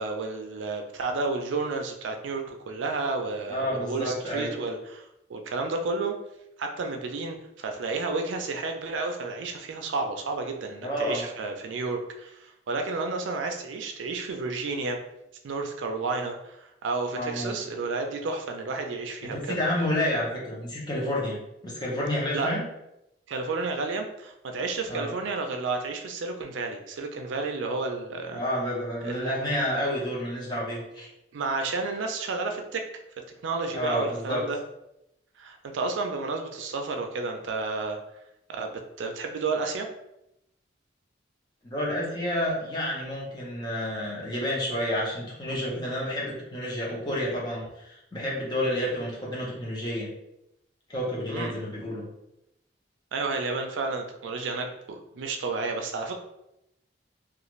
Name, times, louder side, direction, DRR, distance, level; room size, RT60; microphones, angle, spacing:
voice 1, 0.0-5.0 5.3-6.2 6.6-15.0 15.4-19.6 22.3-22.5 23.3-28.4 29.0-29.3 31.3-32.8 33.4-34.6 35.4-38.0 38.5-39.9 51.3-51.6 53.1-56.1, right 3 dB, 85° right, 4 dB, 0.4 m, -31 dB
voice 2, 3.5-4.5 10.8-11.2 17.1-17.5 19.3-21.4 21.6-22.6 24.9-25.1 28.3-31.1 33.7-34.4 41.6-50.1 50.9-52.0, left 1 dB, 25° left, -5 dB, 0.8 m, -30 dB
2.5 x 2.4 x 3.0 m, 0.86 s
head